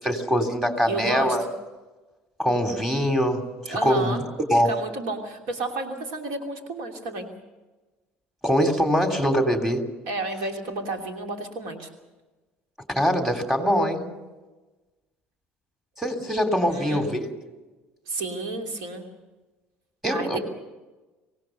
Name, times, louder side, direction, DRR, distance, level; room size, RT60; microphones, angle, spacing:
voice 1, 0.0-1.4 2.4-4.2 4.5-4.8 8.4-9.9 12.9-14.1 16.0-17.3 20.0-20.4, equal, 5° right, 5 dB, 3.3 m, -23 dB
voice 2, 0.9-1.4 3.7-4.2 4.6-7.3 10.1-11.9 16.7-17.1 18.1-19.1 20.1-20.4, right 2 dB, 65° right, 4 dB, 2.9 m, -31 dB
25.0 x 18.0 x 6.7 m, 1.2 s
hypercardioid pair, 60°, 7 cm